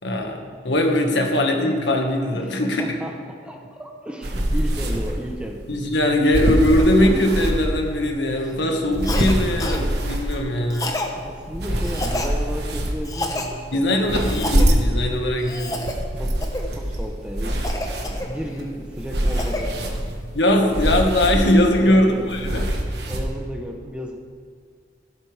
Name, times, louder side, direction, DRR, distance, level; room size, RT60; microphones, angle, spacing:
voice 1, 0.0-3.0 5.7-10.9 13.7-15.8 20.3-22.6, left 1 dB, 80° left, 2 dB, 1.7 m, -20 dB
voice 2, 2.3-5.6 10.8-14.2 15.0-15.3 16.2-16.4 16.7-20.2 21.7-24.2, equal, 5° right, 2 dB, 0.9 m, -34 dB
sound 1, 4.2-23.2, equal, 65° right, 1.5 m, -25 dB
Cough, 9.0-9.3 9.6-9.8 10.7-11.1 11.8-12.3 13.0-13.5 14.2-14.7 15.4-15.9 16.4-16.7 17.6-18.6 19.0-19.6, left 1 dB, 20° left, 0.9 m, -29 dB
15.5 x 12.0 x 3.5 m, 2.1 s
head